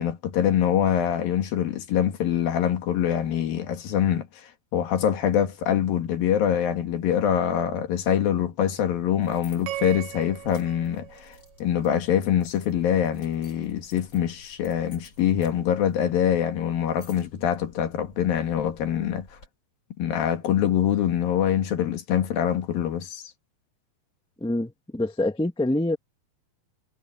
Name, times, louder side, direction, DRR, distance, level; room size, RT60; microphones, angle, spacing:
voice 1, 0.0-4.3 4.7-11.4 11.6-19.3 20.0-23.2, left 9 dB, 85° left, 3.8 m, -24 dB
sound 1, 9.2-19.5, left 2 dB, 30° left, 8.5 m, -54 dB
sound 2, 9.7-12.0, right 14 dB, 75° right, 2.4 m, -38 dB
voice 2, 24.4-26.0, left 1 dB, 5° left, 0.6 m, -25 dB
omnidirectional pair, 4.0 m